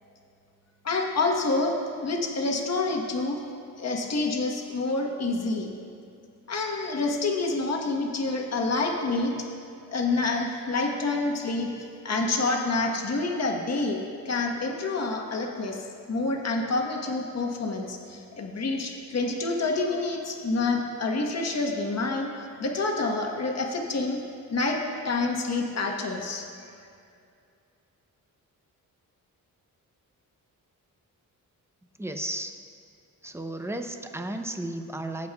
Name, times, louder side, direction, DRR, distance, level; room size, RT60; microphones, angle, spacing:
voice 1, 0.8-1.7 2.0-3.4 3.8-5.7 6.5-9.5 9.9-11.7 12.0-14.0 14.2-24.2 24.5-26.5, left 3 dB, 50° left, 1 dB, 1.2 m, -28 dB
voice 2, 32.0-32.5 33.2-35.3, right 1 dB, 10° right, 6 dB, 0.6 m, -34 dB
18.0 x 8.2 x 2.3 m, 2.4 s
cardioid pair, 95°, 34 cm